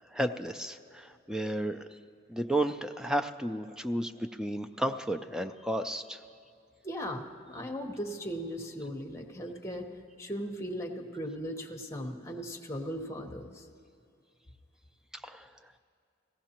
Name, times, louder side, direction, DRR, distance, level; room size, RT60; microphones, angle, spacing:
voice 1, 0.1-1.9 2.3-6.2 15.1-15.5, right 1 dB, 5° right, 7 dB, 0.3 m, -33 dB
voice 2, 6.8-9.9 10.2-13.6, equal, 15° left, 2 dB, 0.9 m, -38 dB
18.0 x 15.5 x 2.9 m, 2.4 s
head